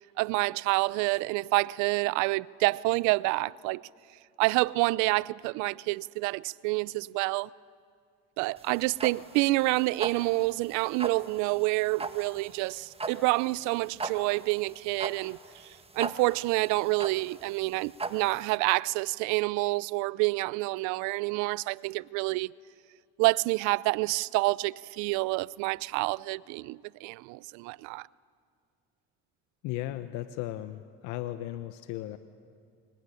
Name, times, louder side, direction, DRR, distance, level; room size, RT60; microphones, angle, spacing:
voice 1, 0.2-3.8 4.4-7.5 8.4-15.4 15.6-22.5 23.2-28.1, right 22 dB, 80° right, 0.6 m, -28 dB
sound 1, 8.6-18.5, right 3 dB, 20° right, 1.8 m, -39 dB
voice 2, 29.6-32.2, left 14 dB, 80° left, 1.1 m, -36 dB
25.5 x 23.0 x 10.0 m
supercardioid pair, 85°, 29 cm